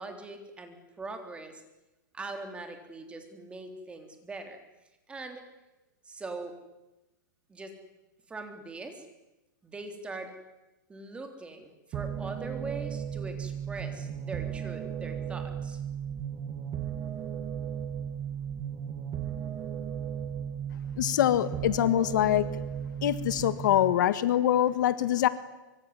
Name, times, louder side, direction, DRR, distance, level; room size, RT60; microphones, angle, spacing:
voice 1, 0.0-1.6 2.1-4.6 5.1-5.4 6.1-6.6 7.5-7.8 8.3-9.1 9.6-10.3 10.9-15.8, right 3 dB, 10° right, 6 dB, 3.6 m, -41 dB
sound 1, 11.9-23.9, right 8 dB, 25° right, 2.3 m, -35 dB
voice 2, 21.0-22.5 23.0-25.3, left 12 dB, 65° left, 14 dB, 1.7 m, -24 dB
24.5 x 24.0 x 9.7 m, 1.0 s
hypercardioid pair, 150°, 11 cm